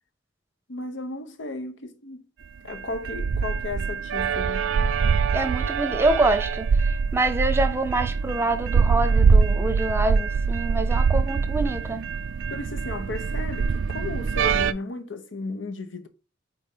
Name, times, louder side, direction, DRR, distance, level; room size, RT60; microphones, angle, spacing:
voice 1, 0.7-2.3 2.6-4.7 12.5-16.1, left 2 dB, 75° left, 1.0 m, -35 dB
sound 1, 2.6-14.7, right 5 dB, 75° right, 0.4 m, -23 dB
voice 2, 5.3-12.1, right 2 dB, 15° right, 0.8 m, -26 dB
4.9 x 4.5 x 5.5 m
head